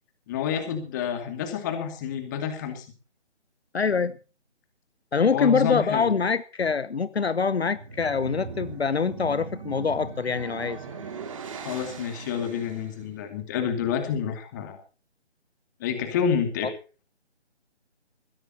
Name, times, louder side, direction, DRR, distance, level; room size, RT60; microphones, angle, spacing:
voice 1, 0.3-2.8 5.3-6.1 11.6-14.8 15.8-16.7, left 7 dB, 15° left, 6 dB, 2.4 m, -29 dB
voice 2, 3.7-4.1 5.1-10.8, left 5 dB, 65° left, 16 dB, 0.9 m, -24 dB
sound 1, 7.6-13.0, right 5 dB, 30° right, 2.6 m, -39 dB
21.5 x 16.0 x 2.9 m, 0.34 s
figure-of-eight pair, 155°, 35 cm